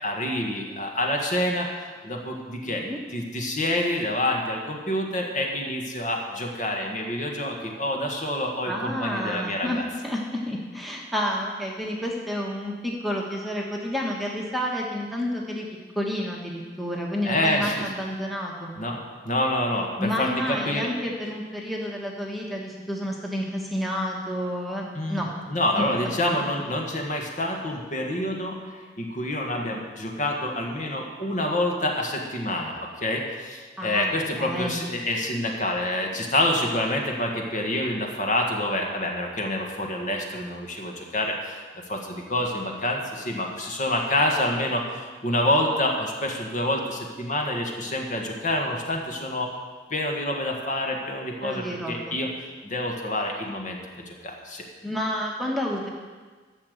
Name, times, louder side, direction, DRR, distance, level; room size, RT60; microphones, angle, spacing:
voice 1, 0.0-1.7 2.0-2.8 3.1-9.8 17.2-17.9 18.8-19.0 19.2-20.9 25.0-28.6 29.0-41.6 41.9-49.5 49.9-52.3 52.6-54.6, left 1 dB, 40° left, 1 dB, 1.8 m, -27 dB
voice 2, 2.6-3.0 8.6-15.7 15.9-18.8 20.0-25.3 25.8-25.9 33.8-34.8 51.4-52.0 54.8-55.9, equal, ahead, -2 dB, 1.4 m, -30 dB
13.0 x 6.8 x 8.0 m, 1.4 s
head